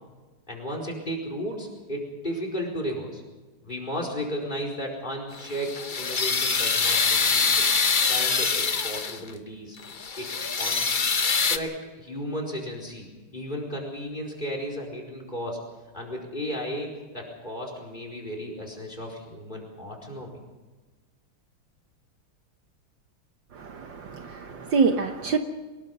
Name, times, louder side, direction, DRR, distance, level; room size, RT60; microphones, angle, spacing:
voice 1, 0.5-3.2 3.6-9.8 10.2-10.3 10.6-11.0 11.5-13.1 13.3-15.6 15.9-20.4, equal, 20° left, 2 dB, 4.9 m, -34 dB
sound 1, 5.3-9.3 9.8-11.6, left 5 dB, 50° left, 0.6 m, -24 dB
voice 2, 23.5-25.4, right 5 dB, 60° right, 6 dB, 1.7 m, -26 dB
24.0 x 20.5 x 5.5 m, 1.3 s
omnidirectional pair, 2.4 m